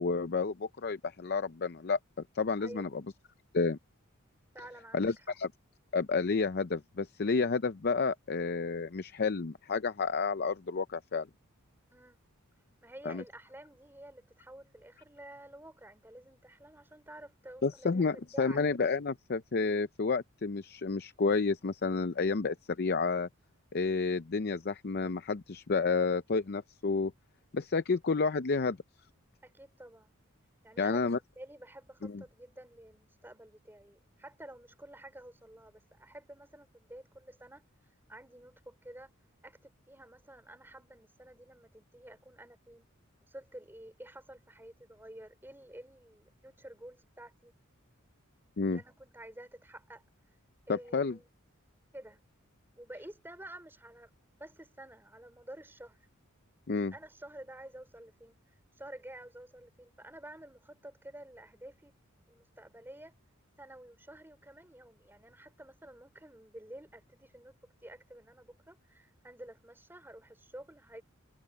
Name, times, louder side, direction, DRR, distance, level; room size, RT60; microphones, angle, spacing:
voice 1, 0.0-2.0 2.3-2.9 3.5-3.8 4.9-5.5 5.9-11.3 13.1-13.2 17.6-23.3 23.7-27.1 27.5-28.8 30.8-31.2 32.0-32.2 48.6-48.8 50.7-51.2 56.7-56.9, left 4 dB, 50° left, 0.6 m, -30 dB
voice 2, 4.5-5.3 11.9-12.2 12.8-18.6 29.4-30.1 30.6-37.7 38.1-39.1 39.4-42.9 43.2-47.5 48.7-50.0 50.7-51.3 51.9-52.2 52.8-54.1 54.4-56.1 56.9-61.9 62.3-63.1 63.6-71.0, right 1 dB, 10° right, 3.8 m, -50 dB
head